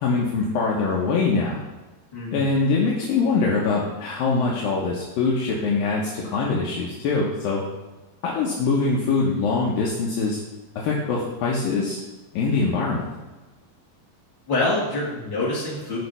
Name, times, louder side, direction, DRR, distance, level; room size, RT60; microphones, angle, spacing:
voice 1, 0.0-1.6 2.3-7.6 8.2-10.4 10.8-12.0 12.3-13.1, left 4 dB, 70° left, -4 dB, 2.7 m, -23 dB
voice 2, 2.1-2.5 14.5-16.0, left 2 dB, 30° left, -7 dB, 3.7 m, -25 dB
16.5 x 5.5 x 3.4 m, 1.2 s
omnidirectional pair, 4.5 m